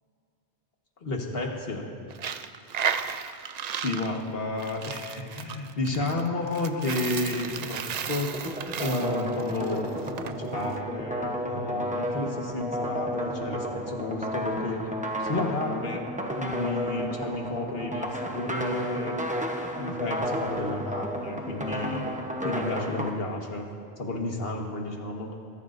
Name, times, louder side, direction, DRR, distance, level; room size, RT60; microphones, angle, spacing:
voice 1, 1.0-1.8 3.7-9.9 10.2-14.9 15.2-16.0 16.4-19.2 19.8-22.1 22.4-23.7 24.0-25.4, left 2 dB, 65° left, 1 dB, 1.7 m, -31 dB
Coin (dropping), 2.1-10.3, right 7 dB, 50° right, 0.5 m, -34 dB
sound 1, 8.3-23.1, equal, 10° right, 0.8 m, -32 dB
21.0 x 14.5 x 2.6 m, 2.5 s
omnidirectional pair, 1.1 m